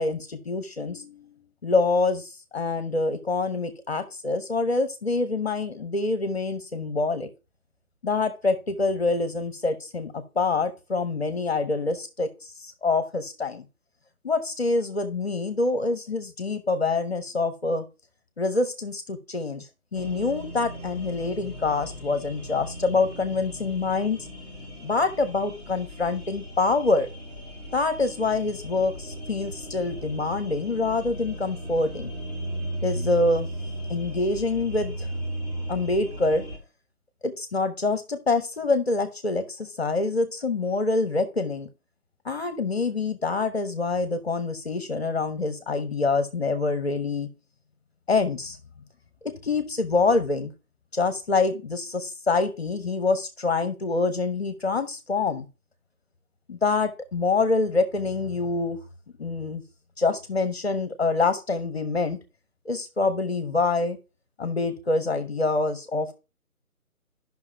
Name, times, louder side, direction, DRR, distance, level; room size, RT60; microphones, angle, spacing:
voice 1, 0.0-7.3 8.0-13.6 14.2-17.8 18.4-24.3 24.8-27.1 27.7-32.1 32.8-33.5 33.9-35.1 35.7-36.4 37.2-41.7 42.2-47.3 48.1-48.6 49.2-50.5 50.9-55.5 56.5-58.8 59.2-59.6 60.0-62.2 62.6-64.0 64.4-66.1, left 3 dB, 45° left, 10 dB, 0.9 m, -26 dB
sound 1, 19.9-36.6, right 1 dB, 10° right, 1.3 m, -36 dB
10.5 x 5.9 x 2.7 m, 0.30 s
figure-of-eight pair, 160°, 44 cm